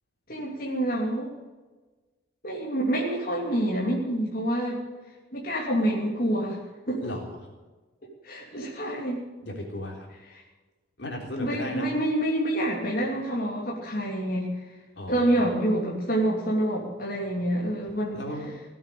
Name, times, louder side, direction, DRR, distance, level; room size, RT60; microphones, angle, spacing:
voice 1, 0.3-1.4 2.4-4.8 5.3-6.6 6.9-7.1 8.2-9.2 11.4-14.5 15.1-18.2, right 1 dB, 50° left, -4 dB, 3.2 m, -27 dB
voice 2, 7.0-7.5 9.4-10.1 11.0-11.9 15.0-15.5 18.1-18.5, left 1 dB, 65° left, 0 dB, 3.7 m, -35 dB
17.0 x 8.7 x 8.6 m, 1.2 s
head